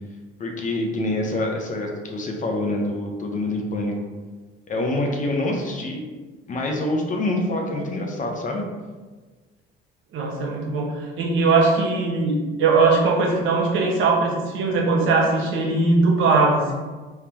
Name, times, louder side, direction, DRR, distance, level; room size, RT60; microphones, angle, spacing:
voice 1, 0.4-3.9 4.7-6.0 6.5-8.6, left 1 dB, 40° left, 2 dB, 0.8 m, -26 dB
voice 2, 10.1-16.7, right 3 dB, 70° right, 0 dB, 1.1 m, -20 dB
4.6 x 3.7 x 2.9 m, 1.3 s
cardioid pair, 100°, 21 cm